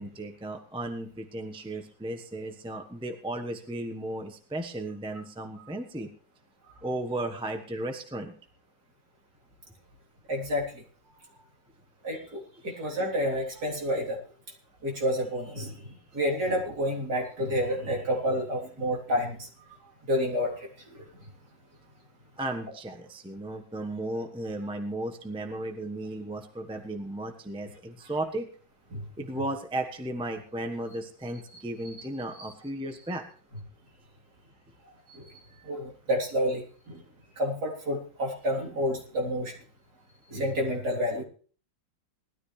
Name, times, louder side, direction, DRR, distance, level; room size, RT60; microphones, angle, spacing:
voice 1, 0.0-6.1 6.8-8.3 22.4-28.5 29.2-33.2, right 1 dB, 5° right, 4 dB, 0.9 m, -35 dB
voice 2, 10.3-10.8 12.0-14.2 14.8-15.8 16.1-19.5 20.1-20.7 28.9-29.0 32.4-32.5 35.1-35.2 35.6-37.0 37.4-39.5 40.3-41.2, equal, 60° right, -1 dB, 4.0 m, -29 dB
19.5 x 13.0 x 3.3 m, 0.42 s
omnidirectional pair, 1.9 m